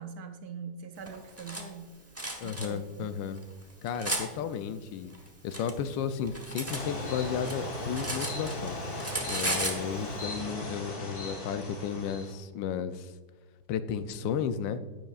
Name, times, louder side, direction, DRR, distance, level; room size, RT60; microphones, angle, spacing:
voice 1, 0.0-2.0 2.4-3.1 4.4-4.5 9.6-9.8, right 5 dB, 70° right, 7 dB, 1.0 m, -43 dB
Cutlery silverware, 1.1-1.6 2.2-2.7 3.4-4.3 5.1-6.8 7.2-8.7 9.0-9.8, right 1 dB, 15° right, 0.5 m, -34 dB
voice 2, 2.4-3.4 3.8-5.1 5.4-8.8 9.3-13.1 13.7-14.8, left 7 dB, 90° left, 11 dB, 1.3 m, -33 dB
sound 1, 6.7-12.3, left 1 dB, 55° left, 1.9 m, -37 dB
10.5 x 9.2 x 2.4 m, 1.3 s
omnidirectional pair, 1.9 m